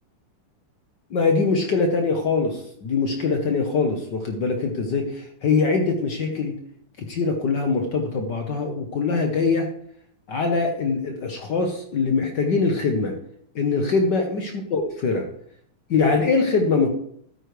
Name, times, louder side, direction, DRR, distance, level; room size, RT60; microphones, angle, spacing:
voice 1, 1.1-6.5 7.0-9.7 10.3-13.1 13.5-15.2 15.9-16.9, left 4 dB, 55° left, 3 dB, 1.6 m, -23 dB
12.5 x 9.8 x 3.3 m, 0.65 s
omnidirectional pair, 2.4 m